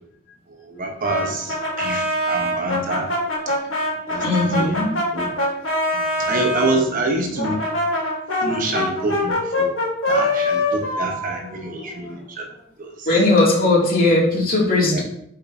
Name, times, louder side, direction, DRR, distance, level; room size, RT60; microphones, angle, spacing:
voice 1, 0.6-3.1 4.1-4.8 5.1-5.3 5.9-7.6 8.4-9.7 10.1-12.4 12.8-13.1 14.9-15.0, right 2 dB, 45° right, 2 dB, 1.1 m, -26 dB
Brass instrument, 1.0-6.8 7.4-12.1, left 1 dB, 80° left, 2.2 m, -24 dB
voice 2, 4.2-4.9 13.1-15.0, left 2 dB, 45° left, -4 dB, 2.5 m, -18 dB
9.1 x 5.2 x 2.7 m, 0.71 s
head